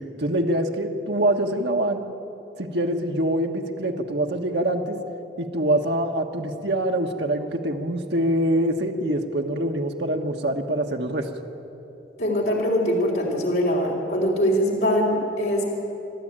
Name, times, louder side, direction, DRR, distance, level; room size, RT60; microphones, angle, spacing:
voice 1, 0.2-2.0 2.6-5.0 5.4-11.3, right 1 dB, 80° right, 3 dB, 1.5 m, -24 dB
voice 2, 12.2-15.7, equal, 70° left, -2 dB, 3.6 m, -22 dB
27.0 x 12.5 x 8.9 m, 3.0 s
head